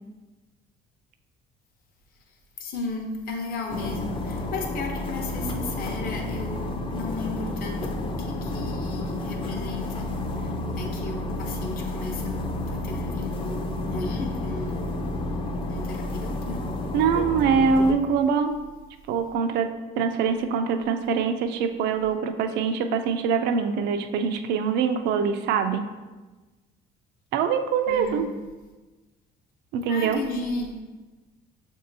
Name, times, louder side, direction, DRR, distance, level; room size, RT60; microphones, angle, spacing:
voice 1, 2.6-10.1 10.3-12.3 12.7-14.9 15.7-16.6 27.9-28.2 29.9-30.7, left 3 dB, 60° left, 1 dB, 0.7 m, -34 dB
sound 1, 3.7-17.9, left 2 dB, 30° left, 0.4 m, -31 dB
voice 2, 16.9-18.6 19.1-25.9 27.3-28.2 29.7-30.2, right 6 dB, 85° right, 8 dB, 0.4 m, -24 dB
6.6 x 2.7 x 2.6 m, 1.2 s
cardioid pair, 110°, 17 cm